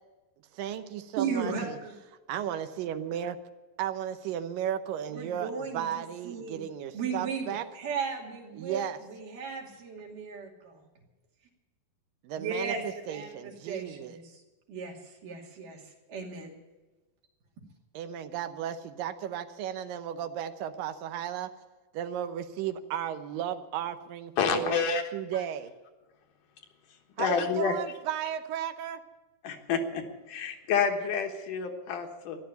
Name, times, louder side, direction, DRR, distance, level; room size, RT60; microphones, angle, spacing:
voice 1, 0.5-1.8 2.3-3.4 3.8-7.7 8.5-9.0 12.2-14.2 17.9-21.5 21.9-25.7 27.2-29.0, right 10 dB, 90° right, 9 dB, 2.6 m, -34 dB
voice 2, 1.2-1.9 5.1-6.7 6.9-10.8 12.4-12.8 13.1-14.4 14.7-15.8 16.1-16.5, right 5 dB, 75° right, -1 dB, 4.2 m, -36 dB
voice 3, 24.4-25.0 27.2-27.8 29.4-32.4, left 6 dB, 75° left, 4 dB, 2.9 m, -29 dB
14.0 x 11.5 x 8.0 m, 1.2 s
omnidirectional pair, 3.8 m